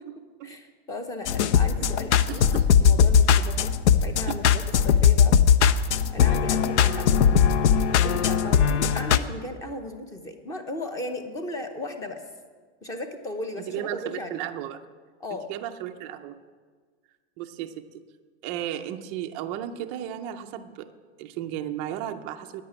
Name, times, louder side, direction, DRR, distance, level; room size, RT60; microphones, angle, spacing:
voice 1, 0.4-2.4 2.8-5.4 6.1-7.2 7.9-12.2 12.8-14.4 15.2-15.5, left 1 dB, 10° left, 7 dB, 0.7 m, -36 dB
sound 1, 1.3-9.2, left 7 dB, 75° left, 0.7 m, -19 dB
voice 2, 2.3-2.7 4.3-4.6 6.2-6.4 8.5-9.3 13.7-14.8 15.5-16.4 17.4-17.8 18.4-20.9 21.2-22.6, right 11 dB, 20° right, 7 dB, 0.4 m, -35 dB
11.0 x 9.8 x 8.8 m, 1.6 s
supercardioid pair, 170°, 34 cm